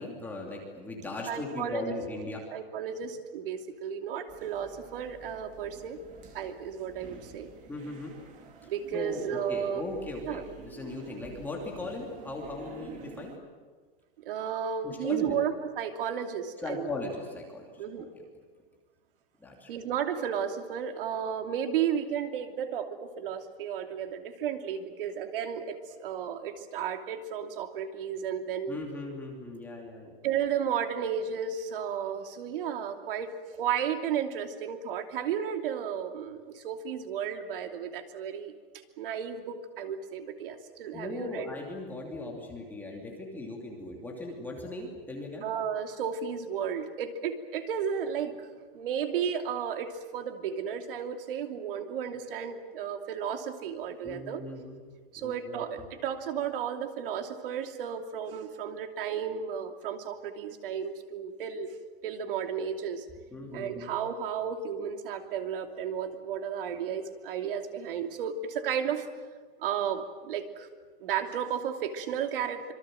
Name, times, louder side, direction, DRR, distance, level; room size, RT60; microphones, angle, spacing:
voice 1, 0.0-2.4 7.7-8.1 8.9-13.4 14.8-15.4 16.6-17.8 19.4-19.7 28.7-30.1 40.9-45.4 54.0-54.8 55.2-55.9 63.3-63.9, left 2 dB, 5° left, -1 dB, 2.8 m, -38 dB
voice 2, 1.3-2.0 2.5-6.0 6.3-7.5 8.6-9.8 10.3-10.4 14.2-16.9 17.8-18.1 19.7-28.8 30.2-33.3 33.6-38.5 39.0-41.5 45.4-48.5 48.7-54.4 55.1-61.7 62.0-63.0 63.5-69.0 69.6-70.7 71.0-72.7, right 8 dB, 65° right, 5 dB, 2.9 m, -33 dB
sound 1, 4.3-13.4, right 6 dB, 25° right, 2.4 m, -50 dB
26.5 x 23.5 x 7.7 m, 1.5 s
supercardioid pair, 180°, 30 cm